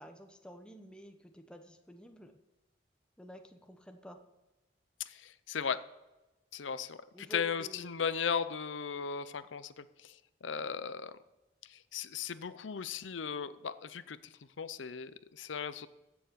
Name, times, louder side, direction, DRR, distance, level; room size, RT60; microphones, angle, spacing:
voice 1, 0.0-2.3 3.2-4.2 7.1-8.0, equal, 5° left, 5 dB, 1.0 m, -50 dB
voice 2, 5.1-5.8 6.5-10.1 10.4-11.1 11.7-14.2 14.6-15.9, left 6 dB, 85° left, 14 dB, 0.6 m, -37 dB
15.5 x 7.1 x 6.9 m, 1.0 s
head